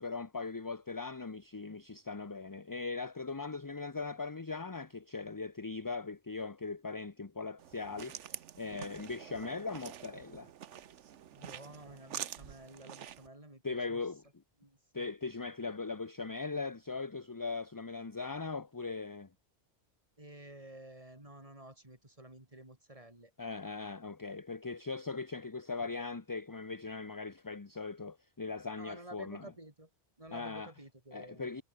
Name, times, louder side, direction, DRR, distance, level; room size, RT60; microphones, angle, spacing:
voice 1, 0.0-10.5 13.6-14.2 14.9-19.3 23.4-29.5 30.3-30.7 31.1-31.6, left 4 dB, 20° left, 0.7 m, -40 dB
sound 1, 7.6-13.3, right 10 dB, 85° right, 1.2 m, -47 dB
voice 2, 11.3-14.0 14.6-15.1 20.2-23.3 28.8-29.9 30.2-31.5, right 1 dB, 30° right, 4.6 m, -52 dB
omnidirectional pair, 1.2 m